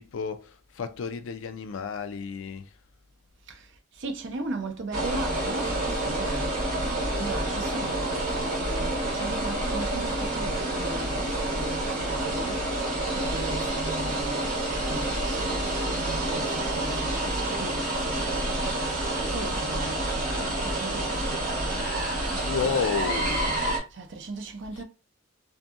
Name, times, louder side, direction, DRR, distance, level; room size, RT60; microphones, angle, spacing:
voice 1, 0.0-2.7 22.4-23.6, left 5 dB, 65° left, 0.4 m, -31 dB
voice 2, 4.0-6.6 7.1-12.6 13.2-18.7 19.3-21.8 22.2-22.4 23.9-24.8, right 3 dB, 55° right, 0.5 m, -38 dB
sound 1, 4.9-23.8, right 1 dB, 40° right, 1.2 m, -28 dB
2.6 x 2.6 x 2.4 m
head